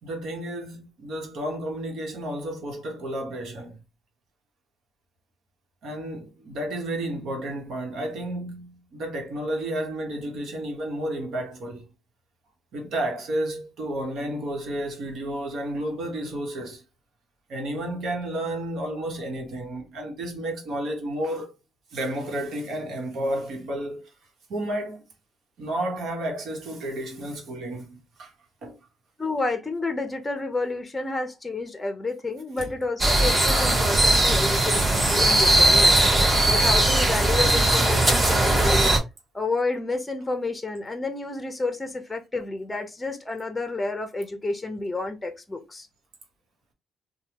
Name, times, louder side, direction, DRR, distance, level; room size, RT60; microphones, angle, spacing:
voice 1, 0.0-3.8 5.8-11.9 12.7-16.8 17.5-21.5 21.9-24.0 24.5-25.0 25.6-28.3 28.6-28.8 32.6-32.7, right 1 dB, 70° right, 1.1 m, -31 dB
voice 2, 29.2-36.0 36.5-38.9 39.3-45.9, left 3 dB, 15° left, 0.6 m, -30 dB
sound 1, 33.0-39.0, right 1 dB, 25° right, 1.2 m, -19 dB
3.4 x 2.2 x 2.9 m
cardioid pair, 90°, 0 cm